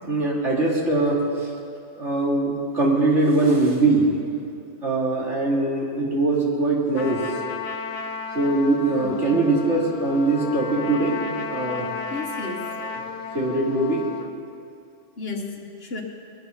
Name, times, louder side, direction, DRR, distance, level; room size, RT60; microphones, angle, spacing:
voice 1, 0.0-1.3 2.0-4.2 4.8-7.2 8.3-11.9 12.8-13.0 13.3-14.0, right 2 dB, 70° right, -4 dB, 2.9 m, -22 dB
Trumpet, 7.0-14.3, left 5 dB, 80° left, 1.2 m, -33 dB
voice 2, 9.0-9.4 12.1-12.7 15.2-16.0, left 2 dB, 55° left, 2 dB, 1.6 m, -33 dB
20.5 x 10.5 x 5.8 m, 2.6 s
omnidirectional pair, 1.2 m